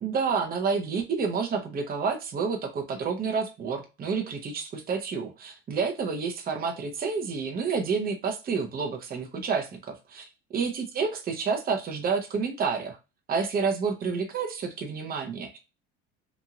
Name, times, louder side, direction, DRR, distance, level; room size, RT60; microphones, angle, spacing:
voice 1, 0.0-10.3 10.5-13.0 13.3-15.6, right 5 dB, 25° right, 3 dB, 0.7 m, -29 dB
2.9 x 2.7 x 2.4 m, 0.28 s
hypercardioid pair, 80°, 37 cm